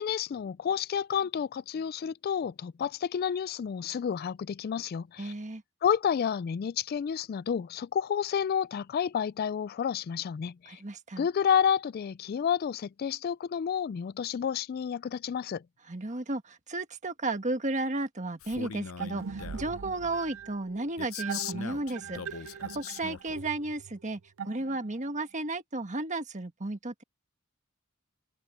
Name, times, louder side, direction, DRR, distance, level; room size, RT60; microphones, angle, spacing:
voice 1, 0.0-5.3 5.8-10.8 11.2-15.6, left 8 dB, 45° left, 0.3 m, -30 dB
voice 2, 5.2-5.6 10.7-11.3 15.9-27.0, right 2 dB, 35° right, 1.5 m, -34 dB
Male speech man speaking, 18.4-19.7 21.0-23.4, left 7 dB, 85° left, 0.7 m, -40 dB
sound 1, 19.0-25.2, right 6 dB, 70° right, 0.5 m, -41 dB
head